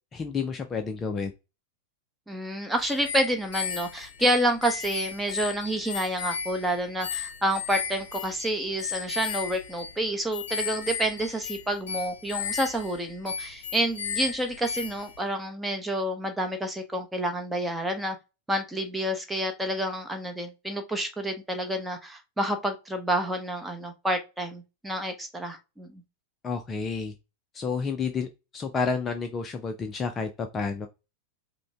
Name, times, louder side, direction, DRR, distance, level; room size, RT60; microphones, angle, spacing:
voice 1, 0.1-1.3 26.4-27.1 27.5-28.3 28.5-30.9, left 5 dB, 20° left, 0.5 m, -30 dB
voice 2, 2.3-18.2 18.5-26.0, right 1 dB, 5° right, 1.0 m, -29 dB
sound 1, 2.8-15.2, left 7 dB, 60° left, 0.7 m, -35 dB
5.0 x 2.2 x 3.5 m
figure-of-eight pair, 90°, 0 cm